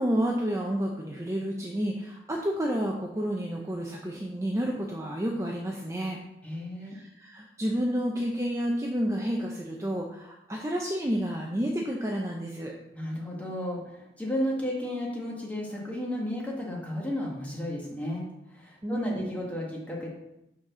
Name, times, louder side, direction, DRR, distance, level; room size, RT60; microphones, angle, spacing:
voice 1, 0.0-6.2 6.8-12.7 18.8-19.3, equal, 15° right, 0 dB, 0.5 m, -30 dB
voice 2, 6.4-7.0 12.9-20.1, left 1 dB, 10° left, -3 dB, 1.5 m, -33 dB
6.2 x 4.1 x 6.1 m, 0.86 s
head